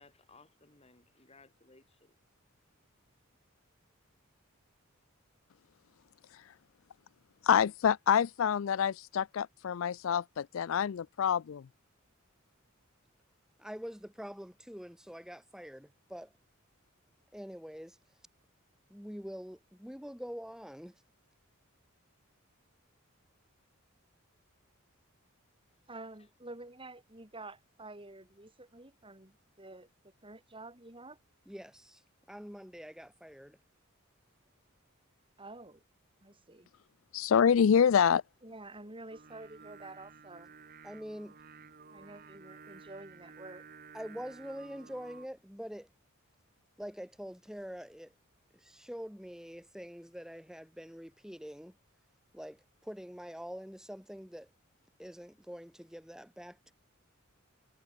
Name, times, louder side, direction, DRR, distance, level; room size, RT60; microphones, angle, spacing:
voice 1, 0.0-2.2, left 3 dB, 30° left, 4.3 m, -60 dB
voice 2, 7.4-11.6 37.1-38.2, left 7 dB, 65° left, 0.4 m, -26 dB
voice 3, 13.6-16.3 17.3-18.0 18.9-20.9 31.5-32.0 32.3-33.6 40.8-41.3 43.9-45.9 46.8-48.1 48.5-51.8 52.3-54.5 55.0-56.7, equal, 5° right, 6.2 m, -45 dB
voice 4, 25.9-31.2 35.4-35.8 36.2-36.7 38.4-40.5 41.9-43.7, right 2 dB, 25° right, 5.6 m, -49 dB
Singing, 39.1-45.3, right 5 dB, 45° right, 1.4 m, -54 dB
head